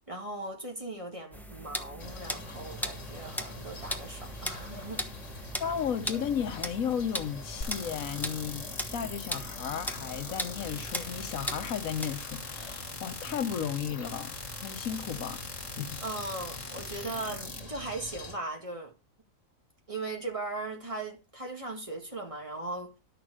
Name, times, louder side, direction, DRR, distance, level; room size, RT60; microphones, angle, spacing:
voice 1, 0.1-5.0 16.0-18.9 19.9-23.0, right 2 dB, 25° right, 2.0 m, -38 dB
sound 1, 1.3-12.2, equal, ahead, 0.8 m, -39 dB
sound 2, 2.0-18.4, left 1 dB, 65° left, 2.1 m, -45 dB
voice 2, 5.6-14.3 14.6-16.0, left 8 dB, 85° left, 1.4 m, -34 dB
sound 3, 7.6-17.6, left 3 dB, 40° left, 1.9 m, -42 dB
11.5 x 6.6 x 4.8 m
omnidirectional pair, 1.4 m